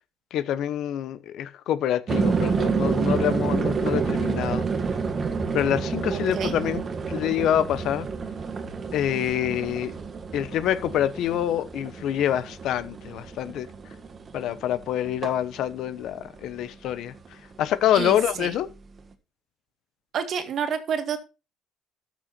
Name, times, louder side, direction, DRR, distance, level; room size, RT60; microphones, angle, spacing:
voice 1, 0.3-4.6 5.5-6.8 7.1-8.1 8.9-9.9 10.3-13.7 14.3-17.1 17.6-18.7, left 11 dB, 70° left, 1.0 m, -26 dB
sound 1, 2.1-16.6 16.9-17.5, right 5 dB, 35° right, 1.7 m, -29 dB
voice 2, 6.1-6.6 17.9-18.6 20.1-21.2, right 7 dB, 55° right, 2.0 m, -29 dB
13.5 x 6.2 x 4.2 m
cardioid pair, 95°, 0 cm